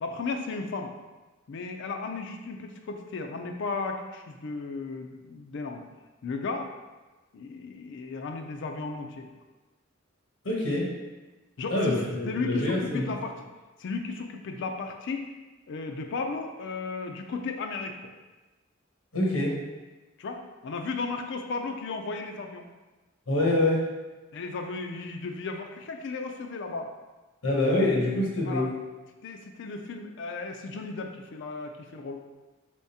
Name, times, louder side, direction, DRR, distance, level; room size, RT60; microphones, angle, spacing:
voice 1, 0.0-0.9 1.5-5.8 6.2-6.7 7.3-9.3 11.6-11.9 12.3-13.3 13.8-15.3 15.7-18.1 20.2-22.7 24.3-26.9 28.4-28.7 29.2-32.2, left 4 dB, 60° left, 4 dB, 0.4 m, -35 dB
voice 2, 10.4-10.9 11.7-13.1 19.1-19.6 23.3-23.8 27.4-28.7, left 1 dB, 85° left, -2 dB, 0.9 m, -25 dB
4.7 x 3.5 x 2.7 m, 1.2 s
head